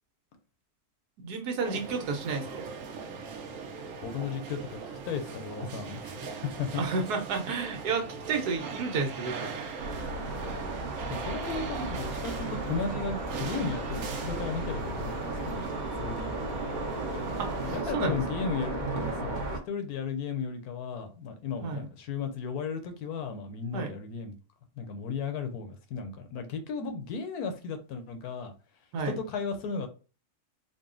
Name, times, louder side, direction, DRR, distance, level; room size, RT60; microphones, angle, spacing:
voice 1, 1.2-2.6 6.8-9.6 17.4-17.5 17.9-18.2 21.6-21.9 23.7-24.0 28.9-29.2, right 4 dB, 80° right, 1.4 m, -31 dB
sound 1, 1.6-17.8, right 5 dB, 60° right, 1.0 m, -40 dB
voice 2, 4.0-4.8 5.1-6.2 6.4-6.8 11.1-15.7 16.0-16.6 17.6-24.4 24.8-28.5 29.0-29.9, left 5 dB, 75° left, 1.2 m, -35 dB
sound 2, 9.8-19.6, right 2 dB, 40° right, 0.8 m, -35 dB
3.9 x 2.2 x 3.7 m
omnidirectional pair, 1.7 m